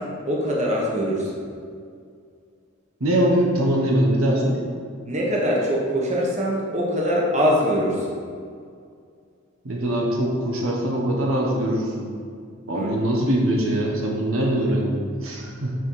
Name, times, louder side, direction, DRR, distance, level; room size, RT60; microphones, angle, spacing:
voice 1, 0.0-1.3 5.1-8.1 12.7-12.9, equal, 35° right, -3 dB, 1.3 m, -23 dB
voice 2, 3.0-4.6 9.6-12.1 12.7-15.7, right 1 dB, 75° right, -1 dB, 1.1 m, -22 dB
6.4 x 5.4 x 4.8 m, 2.2 s
head